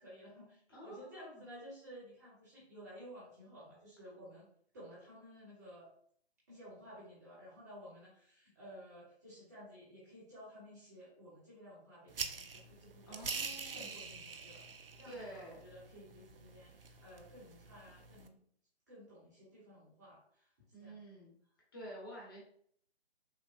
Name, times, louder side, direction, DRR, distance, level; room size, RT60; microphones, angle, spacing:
voice 1, 0.0-4.4 4.7-5.9 6.5-18.4 18.9-20.5 20.8-21.0, equal, 15° right, -9 dB, 0.9 m, -54 dB
voice 2, 0.7-1.4 13.1-13.9 15.0-15.6 20.7-21.3 21.7-22.4, equal, 20° left, -4 dB, 1.0 m, -50 dB
sound 1, 12.1-18.3, right 5 dB, 60° right, 0.5 m, -45 dB
5.7 x 2.1 x 2.4 m, 0.62 s
figure-of-eight pair, 145°, 33 cm